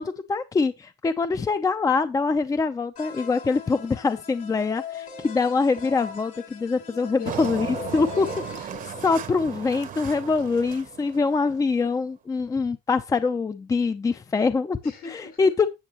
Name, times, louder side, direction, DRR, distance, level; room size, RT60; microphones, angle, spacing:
voice 1, 0.0-7.7 7.9-8.3 9.0-14.8 15.1-15.7, left 4 dB, 20° left, 0.5 m, -24 dB
sound 1, 3.0-8.6, left 7 dB, 55° left, 1.8 m, -40 dB
voice 2, 7.1-9.1 14.8-15.5, left 6 dB, 70° left, 5.3 m, -41 dB
Engine, 7.2-11.7, right 9 dB, 50° right, 0.9 m, -36 dB
8.8 x 7.4 x 2.9 m
cardioid pair, 110°, 17 cm